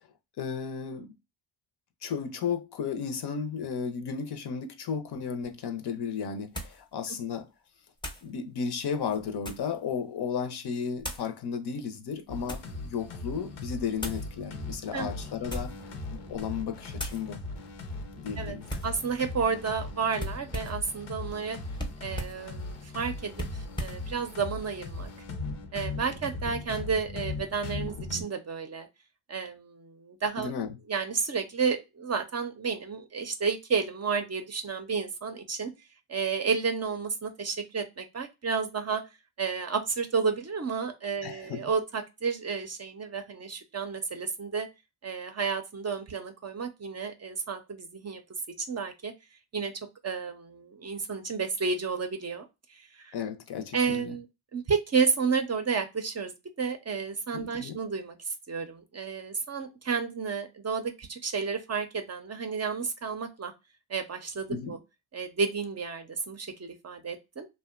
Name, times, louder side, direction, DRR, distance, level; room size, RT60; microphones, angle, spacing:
voice 1, 0.4-1.1 2.0-7.5 8.2-15.7 16.1-17.4 18.2-18.8 30.4-30.7 41.2-41.7 53.1-54.1 57.3-57.8 64.5-64.8, left 6 dB, 55° left, 0.6 m, -34 dB
sound 1, 5.4-5.5 6.5-6.8 8.0-8.3 9.0-9.8 11.0-11.3 12.1-12.8 14.0-14.3 15.4-15.9 16.3-16.5 17.0-17.2 18.7-19.0 20.2-20.9 21.8-22.4 23.3-24.0, equal, 10° left, 0.6 m, -38 dB
sound 2, 12.3-28.2, left 3 dB, 85° left, 0.8 m, -39 dB
voice 2, 18.8-21.6 22.0-25.1 25.7-28.9 29.3-30.5 30.9-35.7 36.1-39.0 39.4-44.7 45.0-48.2 48.7-49.1 49.5-49.7 50.0-53.1 53.7-54.3 54.5-63.5 63.9-64.8 65.1-67.5, right 5 dB, 35° right, 0.5 m, -31 dB
2.6 x 2.2 x 2.4 m
supercardioid pair, 60°, 48 cm